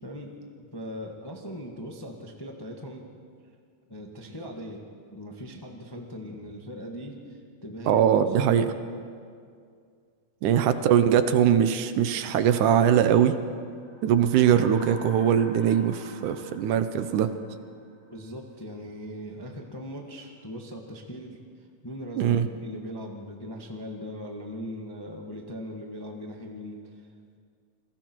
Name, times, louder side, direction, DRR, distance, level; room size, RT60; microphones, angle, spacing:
voice 1, 0.0-0.3 0.6-3.1 3.9-4.8 5.1-8.1 8.4-8.9 10.5-10.7 15.6-15.7 18.1-21.4 21.8-27.1, equal, 15° left, 1 dB, 0.8 m, -39 dB
voice 2, 7.9-8.6 10.4-13.4 14.0-17.3 22.2-22.5, right 9 dB, 75° right, 10 dB, 2.3 m, -21 dB
sound 1, 13.7-18.2, left 1 dB, 35° right, 5.7 m, -48 dB
29.5 x 22.0 x 4.6 m, 2.2 s
omnidirectional pair, 3.7 m